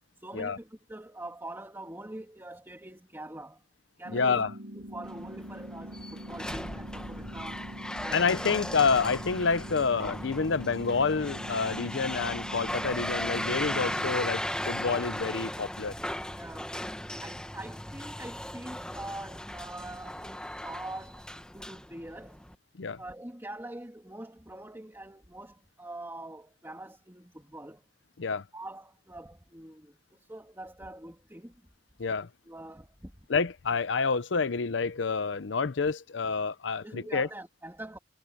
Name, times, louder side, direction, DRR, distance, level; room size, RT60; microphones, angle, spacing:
voice 1, 0.2-3.6 4.0-4.4 4.7-7.7 8.0-8.5 16.3-16.8 17.2-21.2 21.5-22.4 23.0-27.8 28.5-31.5 32.5-33.1 36.8-38.0, right 1 dB, 15° right, 2.9 m, -44 dB
sound 1, 4.0-14.1, equal, 70° right, 1.4 m, -43 dB
voice 2, 4.1-4.5 8.1-15.9 22.8-23.0 28.2-28.4 32.0-32.3 33.3-37.3, left 5 dB, 90° left, 0.7 m, -28 dB
sound 2, 5.0-22.5, left 1 dB, 5° left, 1.2 m, -37 dB
head